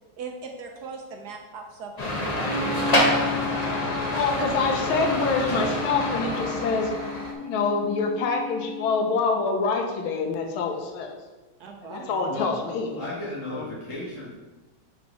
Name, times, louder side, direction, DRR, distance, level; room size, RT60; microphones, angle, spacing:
voice 1, 0.2-2.6 11.6-12.3, right 4 dB, 65° right, 3 dB, 1.1 m, -39 dB
sound 1, 2.0-7.3, left 1 dB, 55° left, 0.4 m, -27 dB
Wind instrument woodwind instrument, 2.4-9.0, left 3 dB, 20° left, 1.7 m, -34 dB
voice 2, 4.1-6.9 7.4-11.2 11.8-13.0 13.5-13.6, left 4 dB, 85° left, 4 dB, 1.7 m, -26 dB
voice 3, 12.3-12.6 13.0-14.3, left 2 dB, 40° left, -8 dB, 2.0 m, -34 dB
5.2 x 4.5 x 5.6 m, 1.2 s
omnidirectional pair, 2.2 m